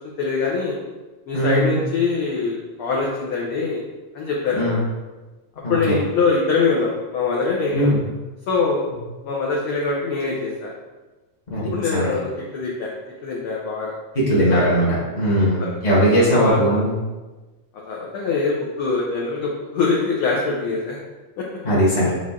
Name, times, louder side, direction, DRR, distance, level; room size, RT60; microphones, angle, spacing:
voice 1, 0.2-0.8 1.3-3.8 4.1-4.8 5.7-8.0 8.5-8.9 9.2-10.7 11.7-12.9 13.2-13.9 14.3-14.6 15.4-15.8 16.3-16.8 17.9-21.0 21.4-21.5, left 4 dB, 75° left, -3 dB, 1.2 m, -23 dB
voice 2, 1.3-1.7 4.5-4.8 5.6-6.0 7.7-8.0 11.5-12.1 14.1-14.9 15.1-16.9 21.6-22.1, equal, 45° left, -8 dB, 0.5 m, -19 dB
7.4 x 3.8 x 3.7 m, 1.2 s
omnidirectional pair, 3.4 m